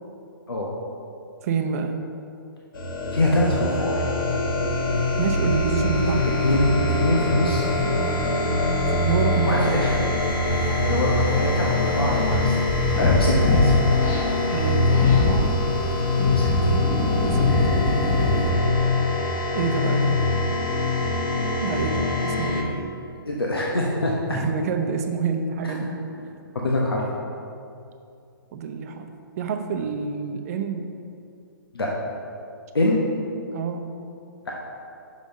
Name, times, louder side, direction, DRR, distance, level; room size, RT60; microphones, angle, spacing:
voice 1, 1.4-2.0 5.2-6.3 8.9-10.0 14.5-15.6 17.2-17.5 19.5-20.2 21.6-22.9 24.3-25.9 26.2-26.3 28.5-29.1 29.4-31.0 33.5-33.9, right 5 dB, 40° right, 6 dB, 0.7 m, -27 dB
sound 1, 2.7-22.6, left 2 dB, 65° left, 1.2 m, -23 dB
voice 2, 3.1-4.1 6.4-7.7 9.4-9.9 10.8-12.6 13.0-13.8 16.3-16.5 18.4-18.6 23.2-24.1 25.6-26.0 26.5-27.0 31.7-31.9 32.7-33.0 34.4-34.5, left 1 dB, 90° left, -3 dB, 1.0 m, -24 dB
sound 2, 5.9-13.8, equal, 5° left, 1.0 m, -33 dB
sound 3, 10.5-18.5, left 3 dB, 20° left, 1.2 m, -25 dB
6.1 x 5.4 x 5.2 m, 2.6 s
hypercardioid pair, 135°, 12 cm